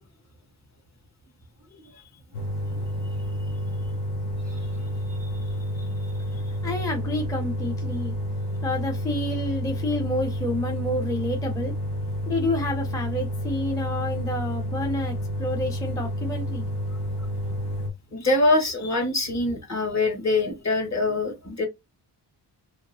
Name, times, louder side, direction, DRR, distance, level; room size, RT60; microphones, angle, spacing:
sound 1, 2.3-17.9, equal, 65° left, 1.0 m, -30 dB
voice 1, 6.6-8.1 8.6-11.7 12.3-16.7, left 1 dB, 10° left, 0.5 m, -29 dB
voice 2, 18.1-21.7, left 2 dB, 40° left, 1.2 m, -24 dB
2.9 x 2.8 x 2.6 m
wide cardioid pair, 125°, 43 cm